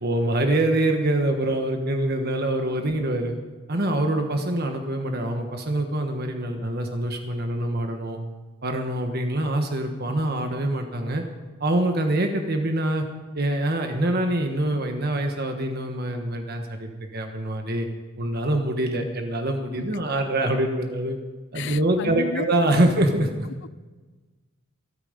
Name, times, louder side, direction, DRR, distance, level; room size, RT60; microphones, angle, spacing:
voice 1, 0.0-3.3 3.7-8.2 8.6-11.2 11.6-13.0 13.3-17.9 18.2-21.2 21.5-23.5, right 1 dB, 45° right, 4 dB, 1.3 m, -25 dB
voice 2, 21.5-22.4 23.6-23.7, left 6 dB, 55° left, 20 dB, 0.4 m, -32 dB
26.0 x 9.2 x 5.2 m, 1.3 s
head